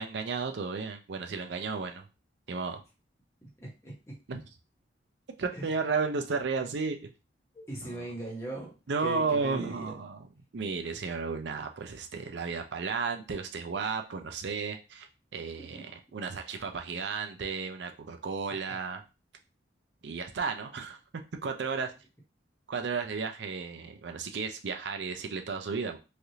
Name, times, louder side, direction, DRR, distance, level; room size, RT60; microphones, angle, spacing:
voice 1, 0.0-2.1 2.5-2.8 4.3-4.4 5.4-7.1 7.8-8.0 8.9-10.2 10.5-19.0 20.0-21.9 22.7-26.0, right 4 dB, 65° right, 6 dB, 0.5 m, -33 dB
voice 2, 3.4-4.2 5.5-5.6 7.5-8.7 9.0-9.9 15.6-15.8 18.7-18.8, right 1 dB, 15° left, -3 dB, 1.0 m, -40 dB
3.2 x 2.4 x 2.7 m, 0.30 s
head